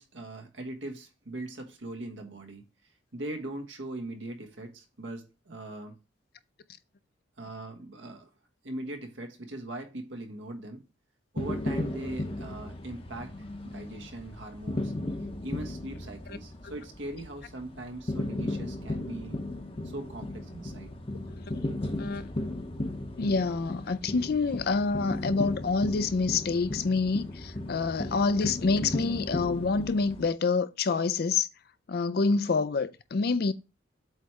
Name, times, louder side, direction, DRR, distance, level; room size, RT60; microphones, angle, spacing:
voice 1, 0.0-2.6 3.1-6.0 7.4-8.3 8.6-10.8 11.3-14.9 15.4-19.4 19.8-20.9, right 1 dB, 70° right, 1.3 m, -40 dB
sound 1, 11.4-30.3, left 1 dB, 30° left, 0.8 m, -35 dB
voice 2, 23.2-31.5 31.9-33.5, left 4 dB, 50° left, 0.4 m, -27 dB
8.0 x 3.2 x 4.7 m
head